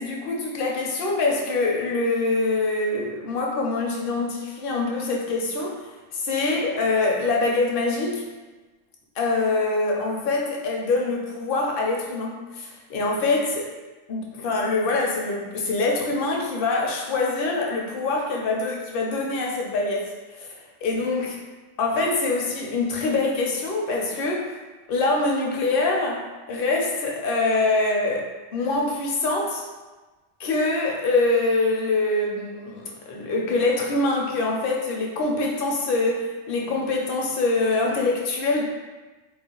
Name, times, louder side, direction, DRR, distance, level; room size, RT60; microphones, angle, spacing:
voice 1, 0.0-8.3 9.2-13.7 14.1-20.5 20.8-21.4 21.8-24.5 24.9-28.2 28.5-29.6 30.4-38.6, left 3 dB, 60° left, -1 dB, 0.7 m, -24 dB
2.5 x 2.1 x 3.6 m, 1.2 s
omnidirectional pair, 1.2 m